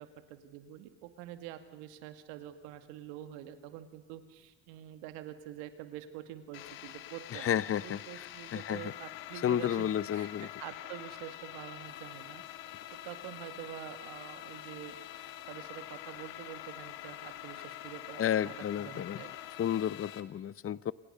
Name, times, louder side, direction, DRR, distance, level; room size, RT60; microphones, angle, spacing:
voice 1, 0.0-7.6 7.8-12.4 12.9-15.0 15.5-19.3, right 12 dB, 90° right, 9 dB, 2.1 m, -46 dB
sound 1, 6.5-20.2, left 13 dB, 85° left, 1.6 m, -46 dB
voice 2, 7.3-8.3 8.5-8.9 9.4-10.5 18.2-19.2 19.6-20.9, left 10 dB, 40° left, 18 dB, 0.8 m, -32 dB
29.0 x 26.5 x 6.8 m, 1.2 s
supercardioid pair, 75°, 35 cm